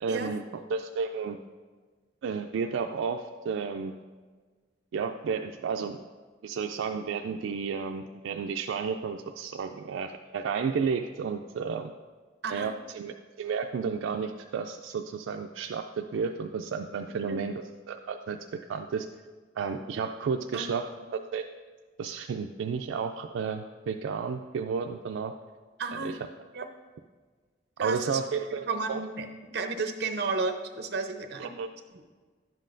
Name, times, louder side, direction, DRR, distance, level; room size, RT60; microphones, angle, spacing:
voice 1, 0.0-1.4 2.2-3.9 4.9-6.0 6.4-11.9 12.5-18.4 18.7-19.1 19.6-20.9 21.3-21.4 22.0-25.3 25.9-26.2 27.8-29.0 31.4-31.7, right 5 dB, 85° right, 5 dB, 0.3 m, -32 dB
voice 2, 25.8-26.2 26.5-26.7 27.8-28.2 28.7-29.3 29.5-31.5, right 4 dB, 60° right, 6 dB, 0.7 m, -32 dB
10.5 x 7.5 x 2.5 m, 1.4 s
head